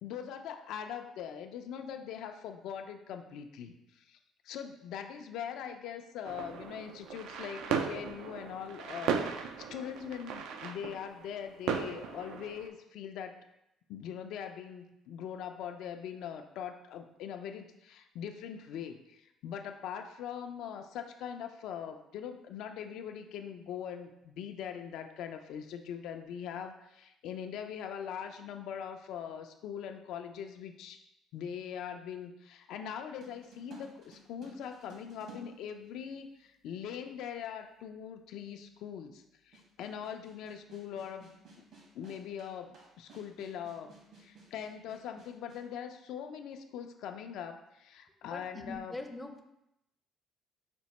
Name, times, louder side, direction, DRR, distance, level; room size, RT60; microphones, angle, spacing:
voice 1, 0.0-4.2 4.4-13.4 13.9-31.0 31.3-41.6 41.9-43.9 44.2-49.1, left 8 dB, 75° left, 6 dB, 0.4 m, -42 dB
sound 1, 6.2-12.7, right 6 dB, 80° right, 0.3 m, -37 dB
sound 2, 33.2-36.4 37.3-37.4 39.5-45.7, right 2 dB, 60° right, 1.2 m, -55 dB
voice 2, 48.2-49.4, left 2 dB, 10° left, 3 dB, 0.4 m, -43 dB
5.1 x 2.1 x 4.0 m, 0.85 s
cardioid pair, 115°, 0 cm